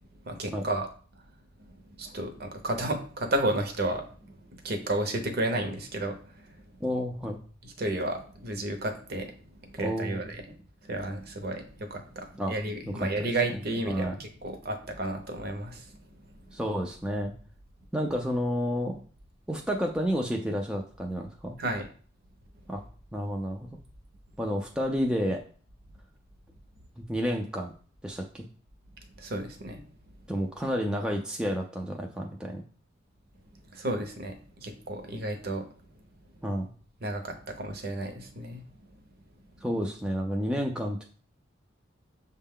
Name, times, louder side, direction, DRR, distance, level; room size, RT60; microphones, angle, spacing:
voice 1, 0.2-0.9 2.0-6.7 7.6-9.4 9.6-10.6 10.8-16.3 21.6-21.9 29.2-29.8 33.7-35.7 37.0-38.6, right 1 dB, 55° right, 5 dB, 0.7 m, -32 dB
voice 2, 6.8-7.4 9.8-10.2 12.4-12.5 12.9-13.1 13.5-13.6 13.9-14.1 16.5-17.3 17.9-18.9 19.5-21.6 22.7-22.8 23.1-23.8 24.4-25.4 27.0-27.7 28.0-28.4 30.3-32.6 36.4-36.7 39.6-41.1, equal, 5° right, 0 dB, 0.3 m, -30 dB
6.3 x 2.2 x 3.6 m, 0.43 s
head